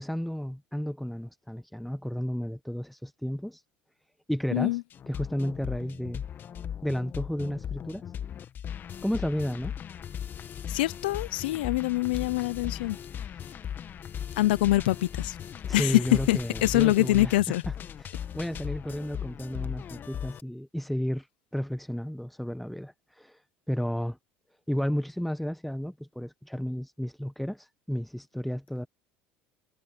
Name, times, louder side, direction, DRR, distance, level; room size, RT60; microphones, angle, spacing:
voice 1, 0.0-3.6 4.3-4.8 5.1-6.2 6.8-8.0 9.0-9.7 15.6-17.5 18.0-21.2 21.5-22.9 23.2-23.4 23.7-24.2 24.7-28.9, equal, ahead, 1.2 m, -32 dB
sound 1, 4.9-20.4, left 9 dB, 40° left, 1.8 m, -38 dB
voice 2, 10.7-13.0 14.4-15.4 15.7-16.0 16.3-17.6, left 17 dB, 85° left, 0.7 m, -24 dB
hypercardioid pair, 85°, 5 cm